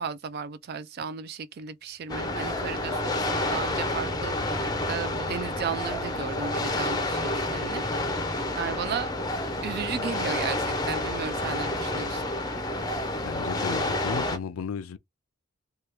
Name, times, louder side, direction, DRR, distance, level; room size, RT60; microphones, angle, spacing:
voice 1, 0.0-9.1 9.6-12.2, right 6 dB, 50° right, 0.3 m, -35 dB
sound 1, 2.0-7.7, right 4 dB, 20° right, 0.8 m, -46 dB
sound 2, 2.1-14.4, left 2 dB, 20° left, 0.5 m, -29 dB
voice 2, 13.1-15.0, left 6 dB, 85° left, 0.4 m, -34 dB
2.8 x 2.3 x 3.2 m
head